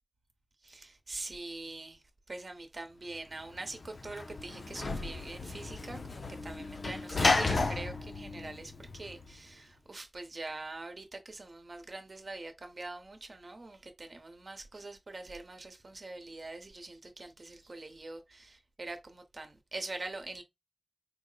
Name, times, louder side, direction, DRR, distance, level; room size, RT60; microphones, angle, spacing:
voice 1, 0.6-20.4, right 2 dB, 60° right, 0.9 m, -44 dB
Sliding door / Slam, 3.5-9.3, left 3 dB, 80° left, 0.5 m, -33 dB
4.7 x 2.1 x 3.9 m
wide cardioid pair, 70°, 0 cm